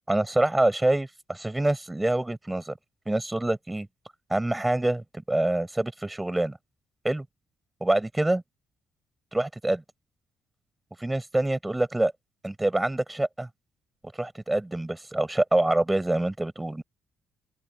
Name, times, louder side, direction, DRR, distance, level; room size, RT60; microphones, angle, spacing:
voice 1, 0.1-2.7 3.1-3.9 4.3-6.6 7.0-7.2 7.8-8.4 9.3-9.8 11.0-12.1 12.4-13.5 14.2-16.8, right 1 dB, 10° right, 6.1 m, -26 dB
open air
cardioid pair, 90°, 0 cm